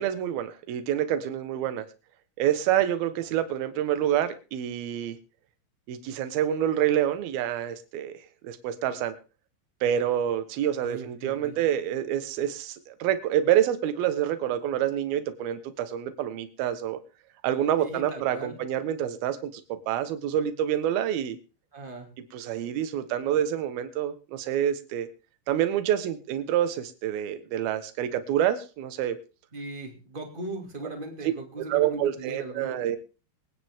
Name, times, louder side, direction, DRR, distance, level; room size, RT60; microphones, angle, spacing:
voice 1, 0.0-1.9 2.4-5.2 5.9-9.1 9.8-17.0 17.4-21.4 22.3-25.1 25.5-29.2 31.7-33.0, right 10 dB, 65° right, 10 dB, 2.6 m, -27 dB
voice 2, 10.8-11.6 17.8-18.6 21.7-22.1 29.5-32.9, right 2 dB, 25° right, 3 dB, 1.2 m, -39 dB
23.0 x 9.7 x 3.6 m, 0.34 s
omnidirectional pair, 5.6 m